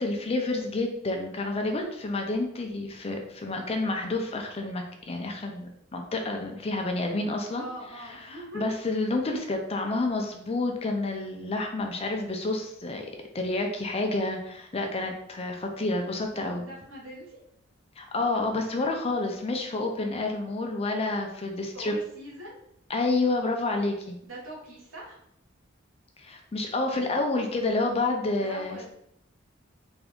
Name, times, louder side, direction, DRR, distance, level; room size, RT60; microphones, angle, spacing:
voice 1, 0.0-7.7 8.0-13.1 13.3-16.6 18.0-22.0 22.9-24.2 26.2-28.9, left 2 dB, 30° left, 3 dB, 0.5 m, -29 dB
voice 2, 7.5-8.6 16.2-17.4 21.7-22.6 24.2-25.2 28.4-28.9, equal, 70° right, -3 dB, 1.3 m, -42 dB
3.4 x 2.5 x 3.5 m, 0.74 s
head